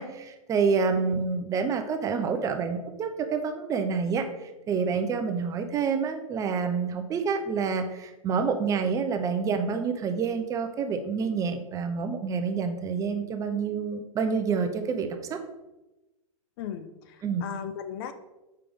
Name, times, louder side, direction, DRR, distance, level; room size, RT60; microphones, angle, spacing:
voice 1, 0.0-15.4 17.2-17.4, right 5 dB, 20° right, 7 dB, 0.5 m, -28 dB
voice 2, 16.6-18.1, left 8 dB, 40° left, 10 dB, 0.5 m, -37 dB
6.8 x 5.0 x 3.4 m, 1.0 s
hypercardioid pair, 135°, 18 cm